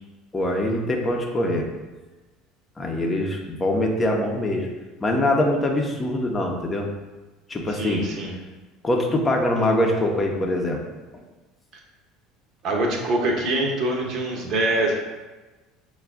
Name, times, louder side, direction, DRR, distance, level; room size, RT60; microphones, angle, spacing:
voice 1, 0.3-1.7 2.8-4.7 5.0-6.9 7.5-8.1 8.8-10.8 11.1-11.2, left 1 dB, 25° left, 1 dB, 0.8 m, -23 dB
voice 2, 7.7-8.3 12.6-14.9, right 1 dB, 50° right, 0 dB, 1.0 m, -24 dB
5.7 x 2.4 x 3.6 m, 1.2 s
hypercardioid pair, 70°, 0 cm